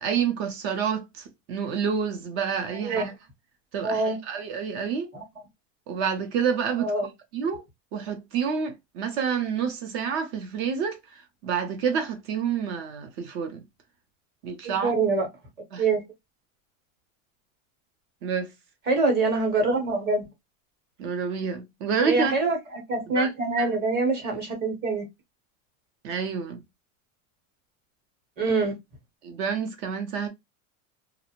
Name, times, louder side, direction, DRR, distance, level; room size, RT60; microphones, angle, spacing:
voice 1, 0.0-3.1 3.7-5.1 5.9-6.9 7.3-7.6 7.9-13.6 14.4-14.9 15.7-15.8 18.2-18.5 21.0-22.3 23.2-23.3 23.6-23.7 26.0-26.6 29.2-30.3, right 6 dB, 55° right, 0.6 m, -28 dB
voice 2, 3.8-4.2 5.1-5.2 6.8-7.1 14.6-15.3 15.8-16.0 18.9-20.2 22.0-25.1 28.4-28.7, right 3 dB, 25° right, 0.8 m, -25 dB
2.4 x 2.0 x 2.8 m
supercardioid pair, 165°, 39 cm